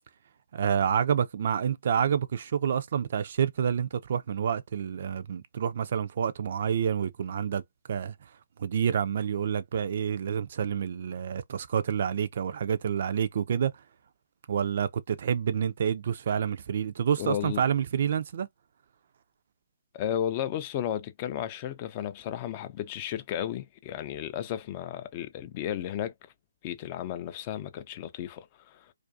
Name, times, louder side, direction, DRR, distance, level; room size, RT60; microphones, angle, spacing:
voice 1, 0.5-7.6 7.9-8.1 8.6-13.7 14.5-18.5, right 8 dB, 50° right, 0.3 m, -28 dB
voice 2, 17.2-17.6 19.9-26.1 26.6-28.9, left 10 dB, 30° left, 0.3 m, -33 dB
2.4 x 2.2 x 2.5 m
figure-of-eight pair, 135°, 0 cm